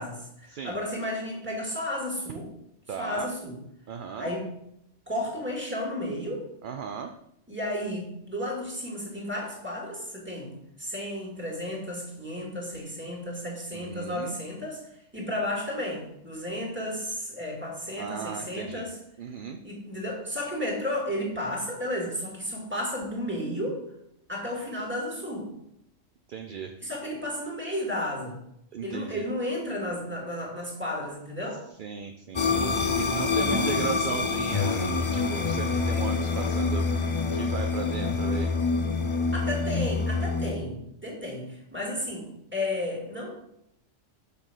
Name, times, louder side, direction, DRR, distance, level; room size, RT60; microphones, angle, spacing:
voice 1, 0.0-2.5 3.0-3.6 4.2-4.5 5.1-6.4 7.5-14.8 15.1-19.0 19.6-23.8 24.3-25.5 26.8-28.4 28.8-31.6 33.4-34.3 39.3-43.3, left 1 dB, 10° right, -1 dB, 2.3 m, -33 dB
voice 2, 2.9-3.3 3.9-4.3 6.6-7.1 13.7-14.4 18.0-18.8 19.2-19.6 26.3-26.8 28.7-29.2 31.8-36.9 37.3-38.5, right 6 dB, 55° right, 5 dB, 0.6 m, -37 dB
sound 1, 32.4-40.5, left 4 dB, 35° left, 0.5 m, -26 dB
6.6 x 5.5 x 6.1 m, 0.78 s
omnidirectional pair, 1.3 m